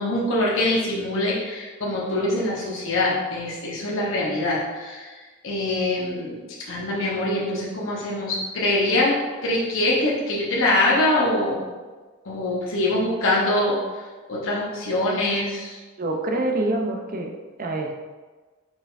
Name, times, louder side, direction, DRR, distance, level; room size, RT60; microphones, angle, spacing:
voice 1, 0.0-5.1 5.4-9.2 9.4-11.6 12.2-13.8 14.3-15.8, left 1 dB, 60° left, -5 dB, 0.9 m, -24 dB
voice 2, 16.0-17.3 17.6-18.0, right 2 dB, 40° right, 2 dB, 0.5 m, -25 dB
4.8 x 4.2 x 2.5 m, 1.3 s
head